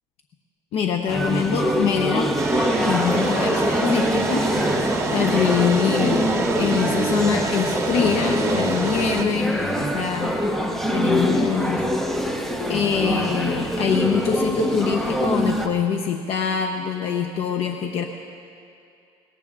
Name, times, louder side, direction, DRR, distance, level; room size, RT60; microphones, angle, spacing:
voice 1, 0.7-2.3 2.8-4.5 4.7-4.8 5.1-6.3 6.6-10.4 10.9-11.8 12.7-18.0, left 7 dB, 55° left, 3 dB, 0.9 m, -24 dB
sound 1, 1.1-15.7, equal, 5° left, 1.0 m, -24 dB
sound 2, 2.4-9.2, right 4 dB, 25° right, 1.0 m, -27 dB
22.0 x 19.0 x 2.5 m, 2.5 s
cardioid pair, 120°, 12 cm